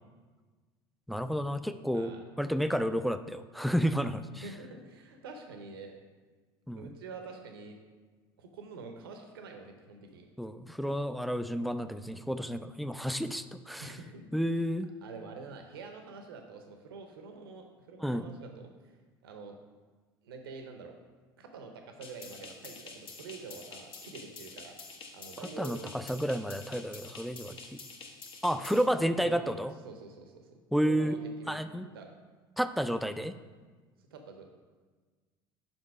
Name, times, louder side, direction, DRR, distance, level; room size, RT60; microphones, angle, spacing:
voice 1, 1.1-2.1 2.4-4.3 6.7-6.9 10.4-13.9 14.3-14.9 18.0-18.3 25.6-27.8 28.4-29.7 30.7-31.2 31.5-31.9 32.6-33.3, equal, ahead, 11 dB, 0.3 m, -31 dB
voice 2, 4.4-6.0 6.7-7.8 8.4-10.3 13.8-14.2 15.0-19.6 20.2-20.9 21.4-25.8 28.5-29.5 29.8-31.6 31.9-32.1 34.1-34.5, right 4 dB, 80° right, 4 dB, 0.7 m, -47 dB
sound 1, 22.0-28.9, left 4 dB, 45° left, 1.1 m, -48 dB
5.5 x 5.2 x 4.8 m, 1.4 s
hypercardioid pair, 70°, 12 cm